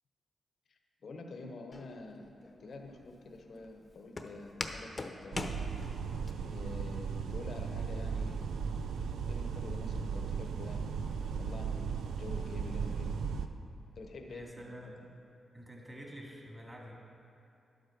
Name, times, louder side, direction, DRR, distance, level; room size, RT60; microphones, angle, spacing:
voice 1, 0.7-2.2 2.6-5.5 6.4-8.5 9.3-13.1 13.9-14.6, left 3 dB, 65° left, 4 dB, 1.0 m, -47 dB
Walk footsteps, 1.7-6.3, left 2 dB, 40° left, 0.8 m, -43 dB
sound 1, 5.3-13.5, right 6 dB, 85° right, 0.4 m, -36 dB
voice 2, 14.3-15.0 15.5-17.0, equal, 25° right, -1 dB, 2.3 m, -48 dB
11.5 x 8.0 x 4.7 m, 2.7 s
cardioid pair, 60°, 0 cm